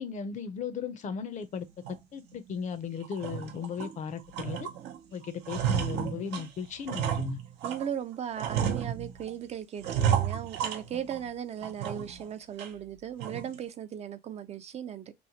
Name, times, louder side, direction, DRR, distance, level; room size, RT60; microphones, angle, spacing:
voice 1, 0.0-4.7 5.1-7.4, left 6 dB, 45° left, 0.5 m, -36 dB
sound 1, 1.8-2.0 2.5-2.6 3.0-4.0 4.3-5.0 5.2-7.9 8.4-9.3 9.8-11.3 11.6-12.2 12.6-12.7 13.2-13.6, right 9 dB, 85° right, 0.6 m, -31 dB
voice 2, 7.6-15.1, right 9 dB, 40° right, 0.4 m, -37 dB
3.0 x 2.0 x 2.7 m
cardioid pair, 110°, 17 cm